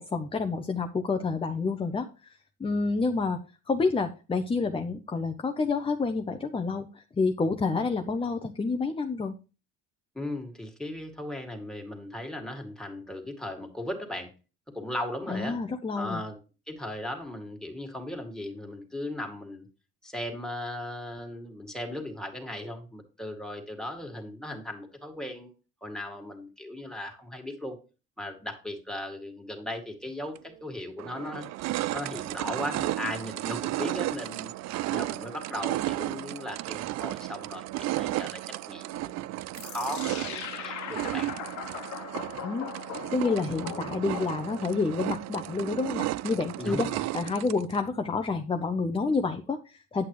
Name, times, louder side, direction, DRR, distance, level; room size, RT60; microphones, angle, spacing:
voice 1, 0.0-3.4 3.7-9.3 15.3-16.2 42.4-42.7 43.1-46.9 47.1-50.0, left 4 dB, 20° left, 6 dB, 0.7 m, -29 dB
voice 2, 10.1-14.3 14.7-15.6 16.0-16.4 16.7-19.7 20.0-25.5 25.8-27.8 28.2-31.5 31.9-34.5 34.9-38.4 38.7-39.1 39.6-41.3 46.6-47.0, left 1 dB, ahead, 2 dB, 2.1 m, -37 dB
sound 1, 30.4-30.5 31.0-47.8, right 16 dB, 60° right, 0.5 m, -34 dB
sound 2, 39.5-44.8, left 9 dB, 65° left, 1.2 m, -40 dB
8.7 x 8.2 x 3.1 m, 0.33 s
cardioid pair, 105°, 30 cm